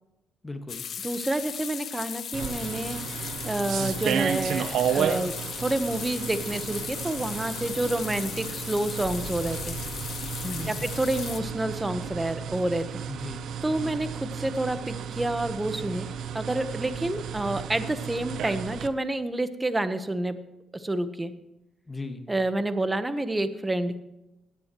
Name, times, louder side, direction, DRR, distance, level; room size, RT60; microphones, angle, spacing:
voice 1, 0.4-0.8 10.4-10.9 13.1-13.9 21.9-22.3, left 2 dB, 20° left, 6 dB, 1.7 m, -37 dB
sound 1, 0.7-11.4, left 8 dB, 55° left, 0.7 m, -37 dB
voice 2, 1.0-5.3 5.6-9.8 10.7-12.9 13.6-16.1 16.3-20.4 20.7-21.3 22.3-24.0, right 1 dB, 15° right, 10 dB, 1.1 m, -29 dB
sound 2, 2.3-18.9, right 8 dB, 75° right, 0.7 m, -33 dB
sound 3, 9.0-15.3, left 4 dB, 75° left, 4.2 m, -46 dB
17.0 x 9.7 x 3.1 m, 0.93 s
cardioid pair, 90°, 0 cm